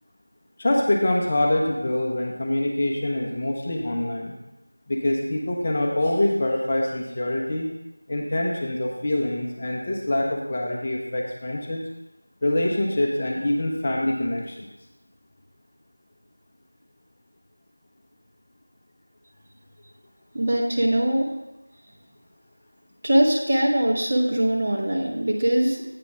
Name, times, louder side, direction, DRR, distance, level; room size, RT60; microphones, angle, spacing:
voice 1, 0.6-4.3 4.9-7.7 8.1-11.8 12.4-14.7, left 1 dB, 25° left, -1 dB, 0.6 m, -25 dB
voice 2, 20.3-21.3 23.0-25.8, right 1 dB, 25° right, -1 dB, 0.9 m, -22 dB
8.4 x 4.0 x 5.9 m, 0.93 s
figure-of-eight pair, 175°, 0 cm